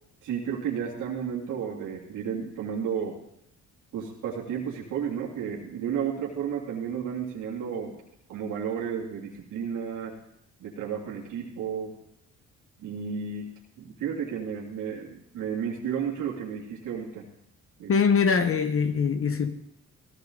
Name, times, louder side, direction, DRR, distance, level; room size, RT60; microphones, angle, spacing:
voice 1, 0.2-3.2 3.9-8.0 8.3-10.1 10.6-11.9 12.8-17.2 17.8-17.9, right 7 dB, 80° right, 2.7 m, -32 dB
voice 2, 17.9-19.6, left 6 dB, 45° left, 1.1 m, -23 dB
17.5 x 15.0 x 4.0 m
cardioid pair, 90°, 30 cm